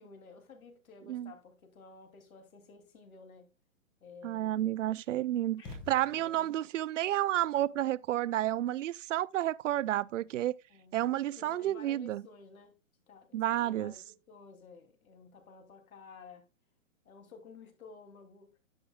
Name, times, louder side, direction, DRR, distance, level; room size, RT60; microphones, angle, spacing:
voice 1, 0.0-3.5 4.0-4.8 6.1-6.5 10.7-11.0 11.4-12.8 13.1-16.5 17.0-18.6, left 4 dB, 85° left, 3.0 m, -53 dB
voice 2, 4.2-10.5 10.9-12.2 13.3-13.9, right 13 dB, 65° right, 0.5 m, -31 dB
sound 1, 5.6-6.6, left 2 dB, 10° left, 0.9 m, -47 dB
10.5 x 8.7 x 2.3 m
hypercardioid pair, 160°, 41 cm